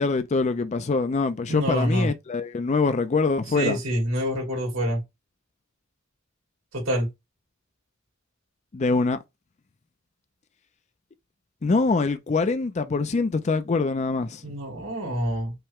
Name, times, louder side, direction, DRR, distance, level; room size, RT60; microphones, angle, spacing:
voice 1, 0.0-3.8 8.7-9.2 11.6-14.4, left 4 dB, 35° left, 0.4 m, -24 dB
voice 2, 1.5-2.1 3.5-5.0 6.7-7.1 14.4-15.5, equal, 80° right, 2.6 m, -26 dB
5.6 x 2.1 x 3.5 m
head